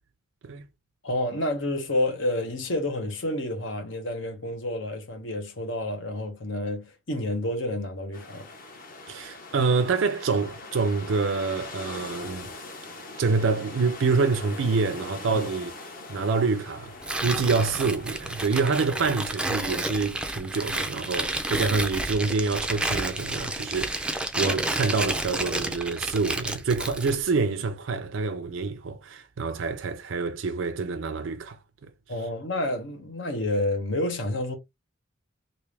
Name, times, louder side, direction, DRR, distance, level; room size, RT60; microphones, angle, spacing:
voice 1, 1.0-8.5 15.3-15.4 32.1-34.6, left 1 dB, 70° left, 1.2 m, -29 dB
sound 1, 8.1-19.6, left 2 dB, 45° left, 1.1 m, -42 dB
voice 2, 9.1-12.5 13.2-15.7 16.1-16.9 17.2-31.6 31.8-31.9, right 4 dB, 75° right, 0.5 m, -26 dB
Tearing, 17.0-27.2, right 1 dB, 5° right, 0.4 m, -30 dB
3.3 x 2.7 x 3.2 m
head